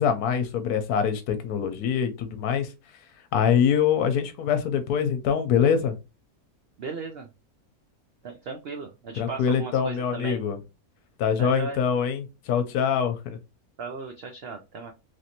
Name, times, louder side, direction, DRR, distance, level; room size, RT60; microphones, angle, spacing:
voice 1, 0.0-2.7 3.3-5.9 9.2-10.6 11.2-13.4, left 7 dB, 80° left, 1.2 m, -24 dB
voice 2, 6.8-7.3 8.2-10.4 11.4-11.8 13.8-14.9, right 4 dB, 75° right, 0.5 m, -36 dB
3.1 x 2.5 x 2.8 m
omnidirectional pair, 1.6 m